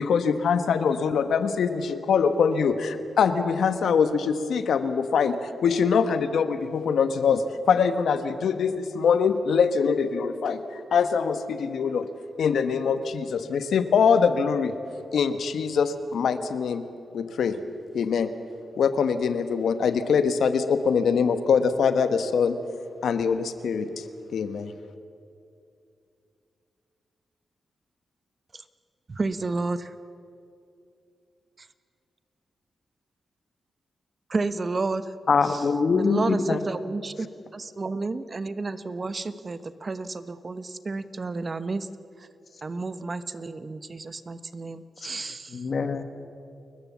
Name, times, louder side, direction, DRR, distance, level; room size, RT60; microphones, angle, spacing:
voice 1, 0.0-5.4 5.6-12.1 12.4-14.7 15.1-16.8 17.1-17.5 17.9-18.3 18.8-22.6 23.0-24.0 24.3-24.7, left 6 dB, 80° left, 1.1 m, -23 dB
voice 2, 29.1-29.9 34.3-35.1 36.1-37.3 37.5-41.9 42.6-45.5, right 3 dB, 45° right, 1.0 m, -31 dB
voice 3, 35.3-36.6 45.0-45.1 45.5-46.0, left 4 dB, 60° left, 1.6 m, -23 dB
29.5 x 14.0 x 7.2 m
supercardioid pair, 50°, 0 cm